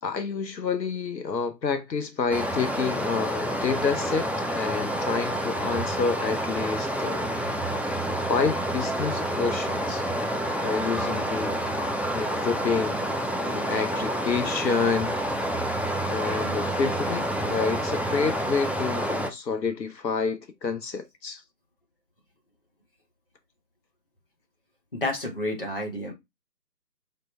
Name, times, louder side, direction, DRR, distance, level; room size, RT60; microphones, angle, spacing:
voice 1, 0.0-7.3 8.3-10.1 10.6-11.6 12.1-13.0 13.4-15.2 16.1-21.4, left 5 dB, 80° left, 0.8 m, -28 dB
Stream, 2.3-19.3, right 1 dB, 5° right, 0.3 m, -28 dB
voice 2, 25.0-26.1, left 1 dB, 35° left, 1.1 m, -29 dB
5.1 x 2.1 x 3.1 m
figure-of-eight pair, 170°, 50 cm